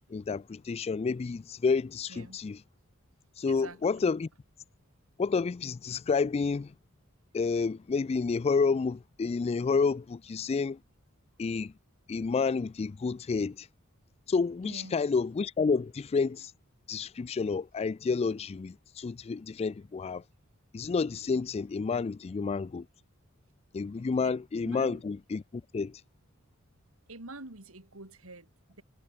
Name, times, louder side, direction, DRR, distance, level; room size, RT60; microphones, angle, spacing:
voice 1, 0.1-2.6 3.4-4.3 5.2-6.7 7.3-10.8 11.4-11.7 12.1-13.7 14.3-16.5 16.9-20.2 20.7-22.9 23.7-26.0, left 4 dB, 30° left, 0.3 m, -30 dB
voice 2, 3.5-4.1 14.6-15.0 24.6-25.0 27.1-28.8, right 2 dB, 75° right, 3.8 m, -46 dB
head